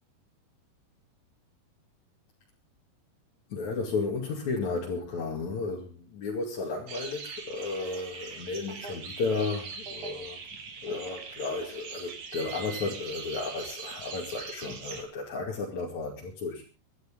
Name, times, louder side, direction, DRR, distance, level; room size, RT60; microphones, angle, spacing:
voice 1, 3.5-10.4 10.8-16.6, left 3 dB, 50° left, -2 dB, 3.4 m, -33 dB
sound 1, 6.9-15.0, right 5 dB, 50° right, 3.6 m, -41 dB
24.0 x 11.5 x 3.7 m, 0.33 s
omnidirectional pair, 4.7 m